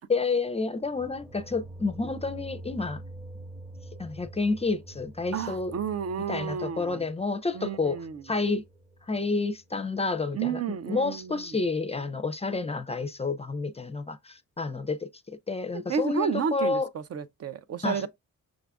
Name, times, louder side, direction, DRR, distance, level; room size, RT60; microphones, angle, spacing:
voice 1, 0.1-3.0 4.0-5.7 6.3-8.6 9.1-10.6 10.9-16.9 17.8-18.1, left 3 dB, 20° left, 0.4 m, -29 dB
sound 1, 0.7-9.7, right 1 dB, 10° right, 0.7 m, -46 dB
voice 2, 5.3-7.1 7.5-8.2 10.3-11.4 15.7-18.1, right 7 dB, 55° right, 0.4 m, -31 dB
6.1 x 2.4 x 3.3 m
wide cardioid pair, 120°, 31 cm